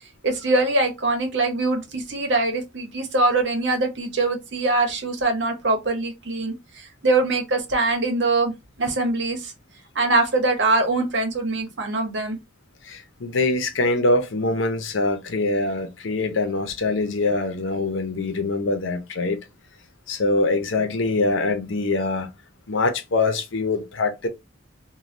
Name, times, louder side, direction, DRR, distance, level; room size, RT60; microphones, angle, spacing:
voice 1, 0.2-8.5 8.8-9.5 9.9-12.4, right 2 dB, 65° right, 0.9 m, -23 dB
voice 2, 12.8-19.4 20.1-22.3 22.7-24.3, left 2 dB, 80° left, 0.7 m, -23 dB
3.2 x 2.2 x 2.5 m
head